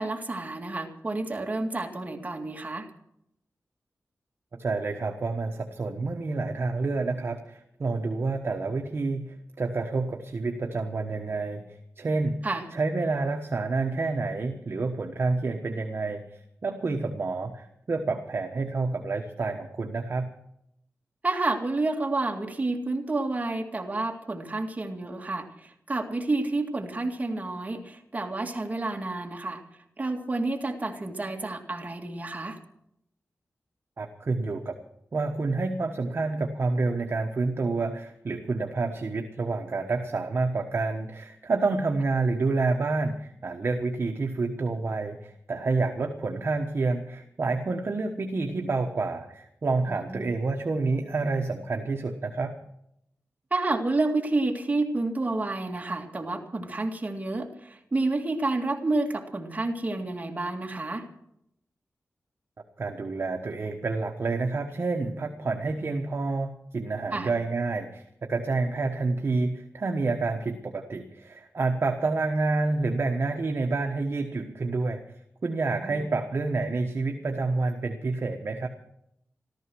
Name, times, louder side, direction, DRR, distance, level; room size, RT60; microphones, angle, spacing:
voice 1, 0.0-2.9 12.4-12.6 21.2-29.6 30.0-32.6 49.9-50.3 53.5-61.1 67.1-67.3 75.8-76.1, right 2 dB, 30° right, 2 dB, 2.1 m, -29 dB
voice 2, 4.6-11.6 12.0-12.4 12.7-20.3 34.0-34.7 35.1-52.6 62.8-75.0 75.4-78.7, right 3 dB, 50° right, 3 dB, 1.2 m, -28 dB
15.0 x 14.0 x 6.2 m, 0.77 s
wide cardioid pair, 125°, 5 cm